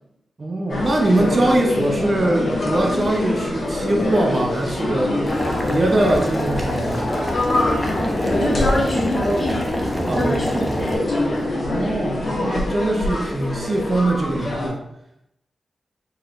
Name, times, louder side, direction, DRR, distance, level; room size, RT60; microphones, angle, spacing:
voice 1, 0.4-5.2 5.6-7.2 10.0-10.8 11.6-14.8, right 2 dB, 40° right, 1 dB, 0.8 m, -22 dB
sound 1, 0.7-14.7, left 2 dB, 75° left, 1.2 m, -25 dB
Boiling, 5.3-10.9, equal, 5° left, 0.7 m, -26 dB
voice 2, 8.2-9.6 10.1-11.5, left 1 dB, 25° left, -10 dB, 1.5 m, -24 dB
4.2 x 4.1 x 2.5 m, 0.80 s
cardioid pair, 85°, 0 cm